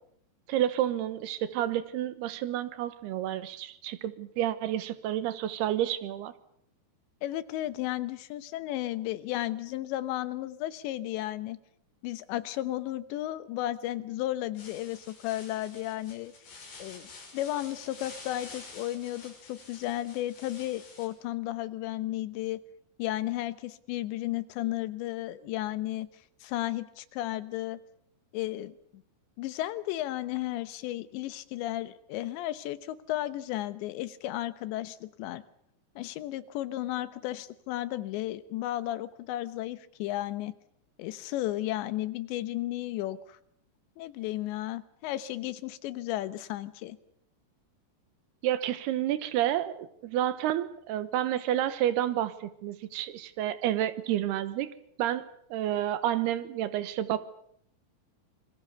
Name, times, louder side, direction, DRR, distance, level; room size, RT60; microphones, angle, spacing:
voice 1, 0.5-6.3 48.4-54.7 55.0-57.2, right 12 dB, 75° right, 14 dB, 2.9 m, -30 dB
voice 2, 7.2-11.6 12.0-16.3 16.8-22.6 23.0-26.1 26.4-27.8 28.3-28.7 29.4-35.4 36.0-40.5 41.0-43.4 44.0-47.0, left 14 dB, 80° left, 14 dB, 3.3 m, -34 dB
sound 1, 14.6-21.1, left 3 dB, 65° left, 8.3 m, -49 dB
27.0 x 22.0 x 6.9 m, 0.69 s
omnidirectional pair, 5.1 m